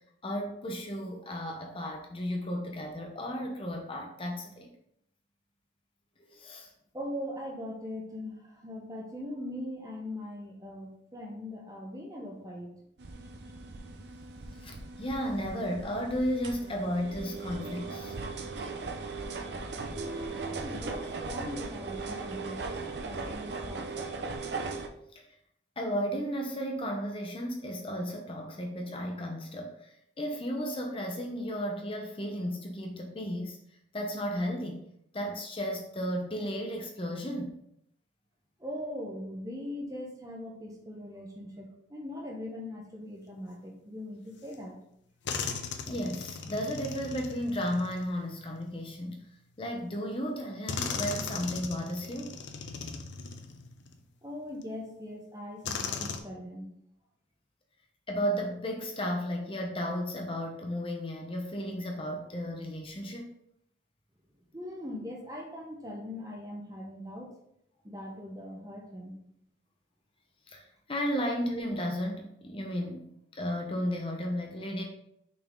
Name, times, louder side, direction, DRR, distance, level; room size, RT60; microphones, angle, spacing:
voice 1, 0.2-4.7 6.2-6.7 14.6-18.2 25.1-25.2 25.8-33.6 33.9-34.8 35.1-37.6 45.9-49.3 49.6-52.3 58.1-63.3 70.5-74.8, equal, 30° left, 1 dB, 0.8 m, -34 dB
voice 2, 6.9-12.7 19.9-22.6 23.0-24.1 38.6-44.8 54.2-56.7 64.5-67.3 67.8-69.1, left 1 dB, 20° right, 0 dB, 1.0 m, -40 dB
sound 1, 13.0-24.9, right 3 dB, 65° right, 0.6 m, -38 dB
sound 2, 44.5-44.6 45.2-48.9 49.8-49.9 50.7-54.0 54.6-54.7 55.6-56.2, left 5 dB, 75° left, 0.7 m, -38 dB
5.9 x 4.4 x 3.8 m, 0.75 s
head